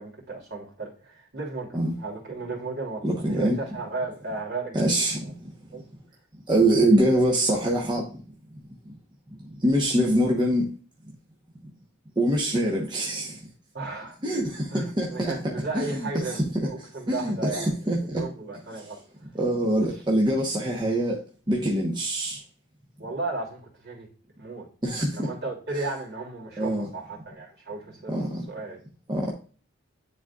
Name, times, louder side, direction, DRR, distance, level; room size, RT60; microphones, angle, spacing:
voice 1, 0.0-4.8 5.7-5.8 13.7-14.2 14.7-19.0 19.7-19.9 23.0-24.1 24.4-24.7 25.1-28.1 28.5-28.8, right 3 dB, 55° right, 2.8 m, -35 dB
voice 2, 3.0-3.6 4.7-5.5 6.5-8.2 9.5-10.7 12.2-13.4 14.2-15.4 15.7-18.2 18.8-18.9 19.3-22.4 24.8-25.3 26.6-26.9 28.1-28.5 29.1-29.3, right 1 dB, 20° right, 1.0 m, -24 dB
10.0 x 3.9 x 2.4 m
head